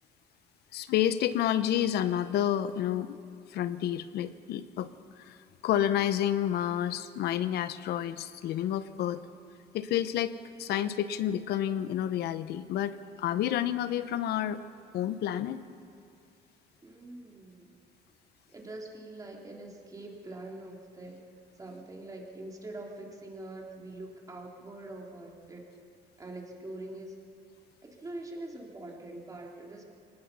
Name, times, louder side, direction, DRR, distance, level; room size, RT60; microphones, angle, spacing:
voice 1, 0.7-3.2 3.5-4.9 5.3-5.4 5.6-9.2 9.7-14.6 14.9-15.6, left 11 dB, 75° left, 13 dB, 0.9 m, -29 dB
voice 2, 16.8-17.7 18.5-21.2 21.6-25.7 26.2-27.2 27.8-29.8, right 2 dB, 20° right, -1 dB, 3.7 m, -44 dB
24.5 x 19.5 x 5.6 m, 2.5 s
cardioid pair, 110°, 17 cm